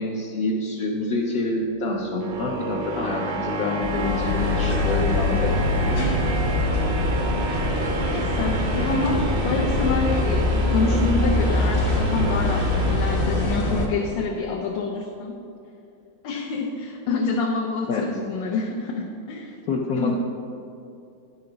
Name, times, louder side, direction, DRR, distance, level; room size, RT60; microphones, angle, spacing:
voice 1, 0.0-5.5 6.0-6.1 17.9-18.1 19.7-20.2, left 3 dB, 65° left, -1 dB, 1.0 m, -27 dB
sound 1, 1.1-14.1, right 3 dB, 80° right, 0.6 m, -32 dB
sound 2, 3.8-13.9, left 2 dB, 40° left, 0.9 m, -23 dB
voice 2, 8.0-15.3 16.2-19.6 20.0-20.2, left 3 dB, 85° left, -1 dB, 1.4 m, -27 dB
10.0 x 5.9 x 3.8 m, 2.6 s
omnidirectional pair, 2.0 m